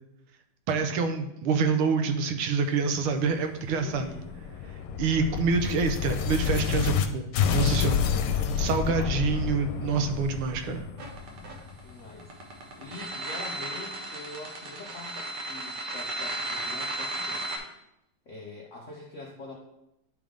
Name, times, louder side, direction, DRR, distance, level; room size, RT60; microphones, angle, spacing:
voice 1, 0.7-4.1 5.0-8.1 8.3-10.9, right 5 dB, 80° right, 7 dB, 1.6 m, -27 dB
sound 1, 3.6-7.1 7.3-12.1, left 8 dB, 85° left, 1.5 m, -29 dB
voice 2, 3.8-4.3 8.6-9.2 11.8-12.3 12.7-17.5 18.3-19.6, left 3 dB, 65° left, -2 dB, 0.7 m, -44 dB
sound 2, 11.0-17.6, right 2 dB, 60° right, 1.6 m, -34 dB
10.5 x 3.8 x 3.5 m, 0.83 s
omnidirectional pair, 2.4 m